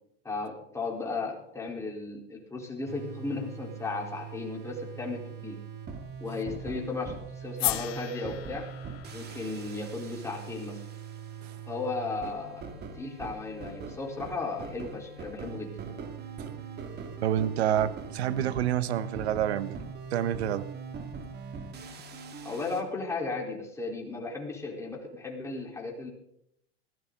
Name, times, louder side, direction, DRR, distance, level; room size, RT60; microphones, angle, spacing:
voice 1, 0.2-5.6 6.2-8.7 9.1-10.8 11.7-15.7 22.4-26.1, left 3 dB, 10° left, -1 dB, 4.0 m, -35 dB
sound 1, 2.9-22.8, right 6 dB, 30° right, 2.5 m, -41 dB
sound 2, 7.6-11.8, left 17 dB, 75° left, 1.3 m, -37 dB
voice 2, 17.2-19.8 20.1-20.7, right 10 dB, 85° right, 15 dB, 1.3 m, -28 dB
20.0 x 15.0 x 3.9 m, 0.73 s
supercardioid pair, 125°, 31 cm